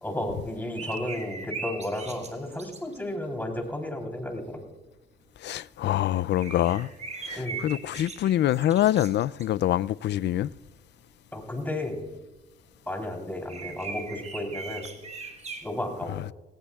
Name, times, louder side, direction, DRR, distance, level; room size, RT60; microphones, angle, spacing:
voice 1, 0.0-4.6 7.4-7.6 11.3-12.1 12.9-14.9 15.6-16.2, left 1 dB, 10° left, 3.6 m, -33 dB
sound 1, 0.8-3.0 6.2-9.5 11.6-11.7 13.5-15.7, right 4 dB, 35° right, 1.6 m, -39 dB
voice 2, 5.4-6.9 7.3-10.5, left 12 dB, 60° left, 0.4 m, -25 dB
18.0 x 18.0 x 2.4 m
cardioid pair, 90°, 20 cm